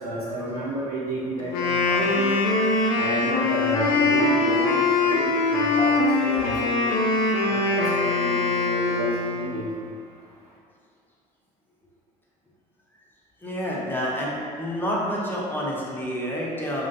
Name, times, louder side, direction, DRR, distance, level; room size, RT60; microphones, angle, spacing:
voice 1, 0.0-2.3 3.0-7.0 7.4-9.6, right 1 dB, 80° right, -6 dB, 0.8 m, -30 dB
Wind instrument woodwind instrument, 1.4-9.6, left 3 dB, 55° left, 0.6 m, -22 dB
voice 2, 13.4-16.9, equal, 10° left, -5 dB, 1.0 m, -28 dB
4.9 x 2.2 x 4.1 m, 2.2 s
figure-of-eight pair, 55°, 19 cm